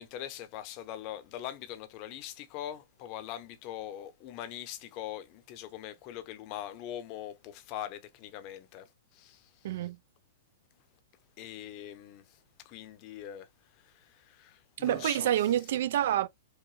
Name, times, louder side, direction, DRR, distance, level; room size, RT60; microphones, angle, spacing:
voice 1, 0.0-9.7 11.4-13.5 13.8-15.3, left 11 dB, 40° left, 0.7 m, -42 dB
voice 2, 9.6-10.0 14.8-16.3, right 11 dB, 65° right, 0.4 m, -28 dB
4.7 x 2.2 x 3.2 m
hypercardioid pair, 130°, 0 cm